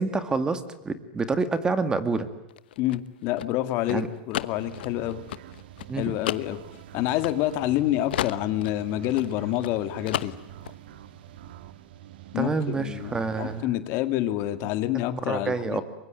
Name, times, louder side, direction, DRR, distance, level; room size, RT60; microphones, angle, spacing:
voice 1, 0.0-2.3 3.9-4.1 5.9-6.1 12.4-13.8 15.1-15.8, right 4 dB, 15° right, 11 dB, 2.1 m, -27 dB
sound 1, 2.5-7.8 8.1-9.8 10.1-10.8, left 13 dB, 80° left, 1.1 m, -33 dB
voice 2, 2.8-5.2 5.9-6.6 6.9-10.3 12.3-15.8, left 14 dB, 45° left, 11 dB, 1.9 m, -27 dB
sound 2, 4.5-13.6, right 12 dB, 75° right, 1.9 m, -46 dB
24.5 x 22.5 x 9.1 m, 0.90 s
supercardioid pair, 135°, 5 cm